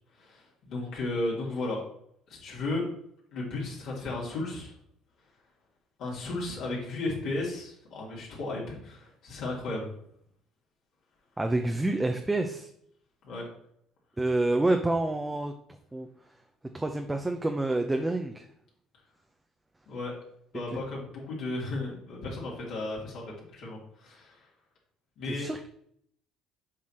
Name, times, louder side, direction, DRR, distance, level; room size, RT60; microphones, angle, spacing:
voice 1, 0.2-1.8 2.3-2.8 3.3-4.7 6.0-9.9 13.2-13.5 19.9-20.2 20.5-23.2 23.5-24.5 25.2-25.5, left 2 dB, 65° left, -4 dB, 2.9 m, -34 dB
voice 2, 11.4-12.7 14.2-15.5 15.9-16.1 16.7-18.5 25.3-25.7, right 2 dB, 15° right, 4 dB, 0.7 m, -28 dB
7.5 x 4.8 x 4.4 m, 0.69 s
supercardioid pair, 80°, 0 cm